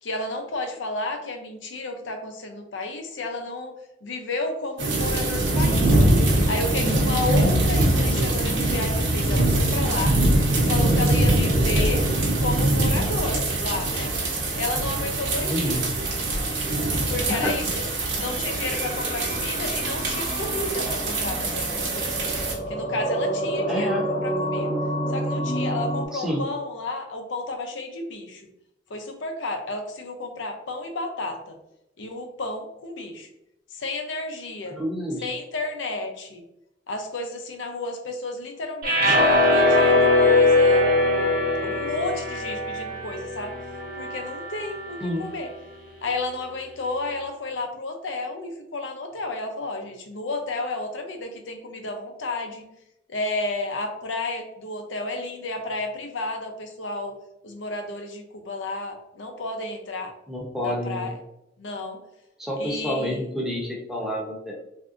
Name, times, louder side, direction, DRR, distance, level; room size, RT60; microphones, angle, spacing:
voice 1, 0.0-3.7 4.0-5.9 6.5-10.2 10.5-12.0 12.4-14.1 14.6-15.8 17.1-17.7 18.1-22.4 22.7-24.7 25.1-28.4 28.9-31.6 32.0-33.3 33.7-34.8 35.2-36.4 36.9-40.9 41.6-43.5 44.0-45.5 46.0-52.6 53.1-57.1 57.4-60.2 60.6-61.1 61.6-62.0 62.6-63.2, left 2 dB, 80° left, 5 dB, 0.6 m, -32 dB
sound 1, 4.8-22.5, right 1 dB, 80° right, 0.9 m, -23 dB
voice 2, 7.8-8.1 15.5-15.9 17.3-17.7 23.7-24.1 26.1-26.4 34.7-35.4 45.0-45.3 60.3-61.1 62.4-64.5, equal, ahead, -3 dB, 0.7 m, -29 dB
sound 2, 17.5-26.1, right 1 dB, 40° left, 0.5 m, -29 dB
sound 3, 38.8-45.1, left 2 dB, 50° right, 0.6 m, -21 dB
3.4 x 2.6 x 2.5 m, 0.81 s
head